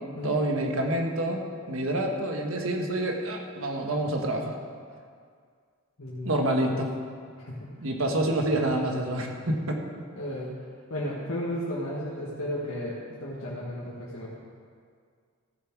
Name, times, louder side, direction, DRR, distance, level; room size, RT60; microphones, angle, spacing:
voice 1, 0.2-4.5 6.2-6.9 7.8-9.8, right 1 dB, 75° right, 2 dB, 1.4 m, -27 dB
voice 2, 6.0-6.3 7.4-7.7 10.2-10.5 10.9-12.9 13.2-14.3, left 1 dB, 80° left, -7 dB, 1.6 m, -33 dB
15.0 x 7.3 x 4.7 m, 2.1 s
head